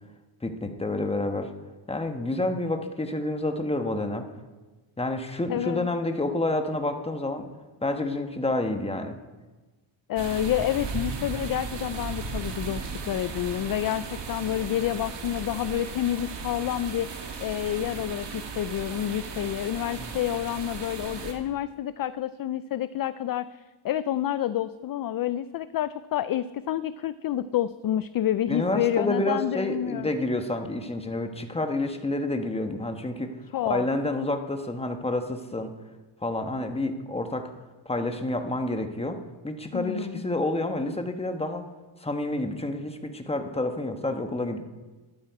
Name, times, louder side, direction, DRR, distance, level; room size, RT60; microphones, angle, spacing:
voice 1, 0.4-1.5 1.9-4.3 5.0-7.5 7.8-9.2 19.9-20.2 28.5-33.3 33.6-35.7 36.2-37.5 37.8-41.7 42.0-44.6, left 2 dB, 10° left, 6 dB, 1.2 m, -29 dB
voice 2, 5.5-5.9 10.1-30.1 33.5-33.9 39.7-40.2, left 11 dB, 45° left, 15 dB, 0.4 m, -29 dB
sound 1, 10.2-21.3, right 4 dB, 55° right, 2.3 m, -36 dB
13.0 x 12.0 x 4.8 m, 1.2 s
cardioid pair, 100°, 50 cm